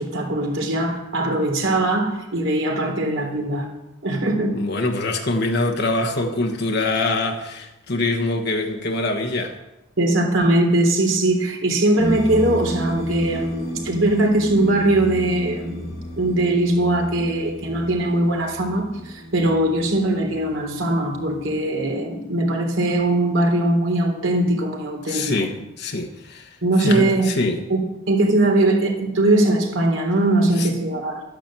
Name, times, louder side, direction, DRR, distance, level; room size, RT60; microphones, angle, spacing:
voice 1, 0.0-3.7 4.0-4.6 10.0-25.5 26.6-27.3 27.7-27.8 28.1-31.1, right 1 dB, 75° right, 2 dB, 3.5 m, -20 dB
voice 2, 4.5-9.5 25.1-27.6 30.6-30.7, left 2 dB, 55° left, 3 dB, 1.4 m, -24 dB
sound 1, 12.0-21.5, equal, 80° left, 5.6 m, -32 dB
12.0 x 10.5 x 7.6 m, 0.91 s
head